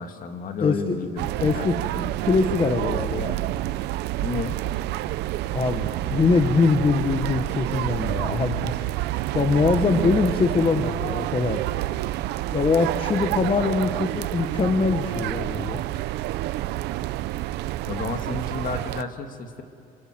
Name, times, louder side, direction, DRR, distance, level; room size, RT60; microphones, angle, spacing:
voice 1, 0.0-2.1 4.2-4.6 17.9-19.6, left 4 dB, 55° left, 6 dB, 2.3 m, -32 dB
voice 2, 0.6-0.9 1.4-1.8 2.2-3.4 5.5-8.7 9.3-11.6 12.5-15.8, left 4 dB, 30° left, 6 dB, 1.4 m, -23 dB
sound 1, 1.2-19.0, right 16 dB, 85° right, 0.7 m, -28 dB
27.5 x 25.5 x 7.7 m, 2.6 s
cardioid pair, 110°, 17 cm